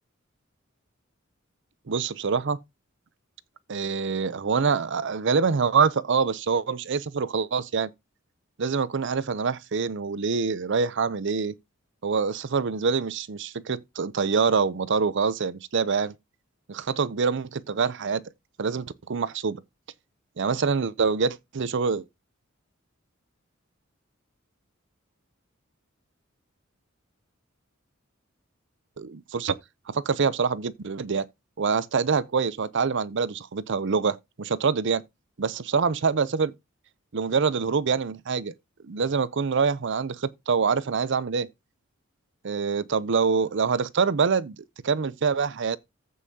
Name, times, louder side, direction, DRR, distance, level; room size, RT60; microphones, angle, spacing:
voice 1, 1.9-2.6 3.7-7.9 8.6-11.5 12.0-16.1 16.7-18.2 18.6-19.6 20.4-22.0 29.0-29.6 29.9-31.3 31.6-35.0 35.4-36.5 37.1-38.5 38.8-41.5 42.4-45.8, right 5 dB, 60° right, 0.6 m, -25 dB
14.5 x 5.5 x 2.8 m
head